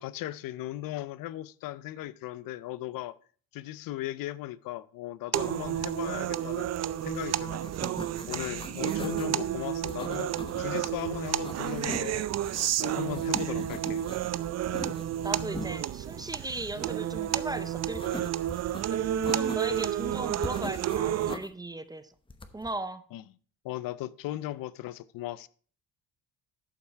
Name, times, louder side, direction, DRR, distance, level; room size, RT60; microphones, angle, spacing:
voice 1, 0.0-3.2 3.5-6.7 7.0-7.6 8.3-12.3 12.8-14.0 23.1-23.2 23.6-25.5, left 14 dB, 70° left, 0.5 m, -37 dB
sound 1, 5.3-21.3, right 11 dB, 50° right, 0.5 m, -31 dB
sound 2, 7.1-7.2 7.5-9.3 9.9-10.9 11.2-12.1 12.4-14.3 14.6-15.7 17.9-18.8 19.2-20.0 20.4-21.5 22.3-22.7, left 3 dB, 15° left, 0.9 m, -41 dB
voice 2, 14.8-18.3 18.9-19.0 19.3-22.1 22.5-23.0, right 2 dB, 10° right, 0.6 m, -37 dB
11.5 x 5.5 x 4.6 m
cardioid pair, 100°, 35 cm